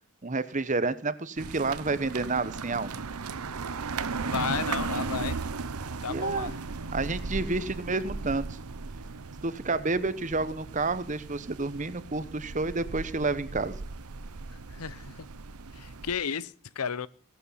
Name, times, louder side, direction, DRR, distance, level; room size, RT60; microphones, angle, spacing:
voice 1, 0.2-2.9 6.1-6.5 6.9-8.6 9.4-13.8, right 3 dB, 35° right, 0.9 m, -30 dB
sound 1, 1.4-16.1, right 4 dB, 80° right, 0.8 m, -36 dB
voice 2, 4.2-5.4 6.0-6.5 14.7-15.3 15.7-17.1, left 6 dB, 80° left, 0.7 m, -33 dB
17.0 x 11.5 x 5.6 m
head